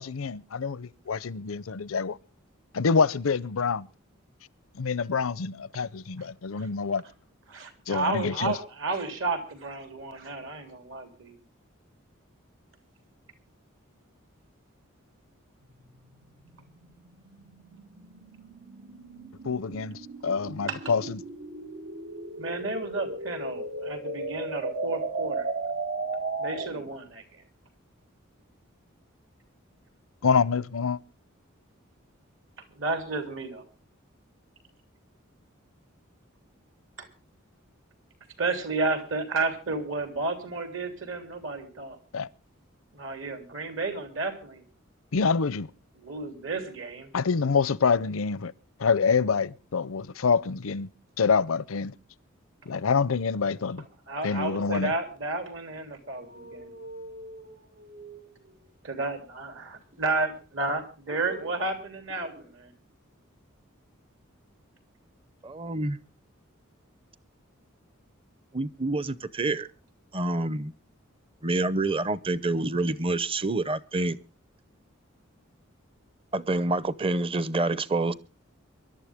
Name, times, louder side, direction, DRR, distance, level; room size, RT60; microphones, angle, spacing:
voice 1, 0.0-2.2 2.7-3.9 4.8-7.0 7.9-8.5 19.4-21.2 30.2-31.0 42.1-42.3 45.1-45.7 47.1-48.5 48.8-50.9 51.2-51.9 52.7-53.9 54.2-54.9, left 5 dB, 90° left, 0.6 m, -26 dB
voice 2, 7.5-11.4 20.7-20.8 22.4-25.5 26.4-27.4 32.7-33.6 37.0-37.1 38.4-42.0 42.9-44.6 46.0-47.1 53.4-53.6 54.1-56.7 58.8-62.7, right 3 dB, 70° right, 3.4 m, -32 dB
sound 1, 15.6-26.9, right 3 dB, 85° right, 2.2 m, -36 dB
sound 2, 56.2-58.7 59.9-60.5 60.8-61.7 62.1-62.6 62.9-63.0, right 1 dB, 50° right, 6.8 m, -45 dB
voice 3, 65.4-66.0 68.5-69.7 70.1-70.7 71.4-74.2 76.3-78.1, right 2 dB, 25° right, 0.7 m, -27 dB
23.5 x 12.0 x 3.5 m
head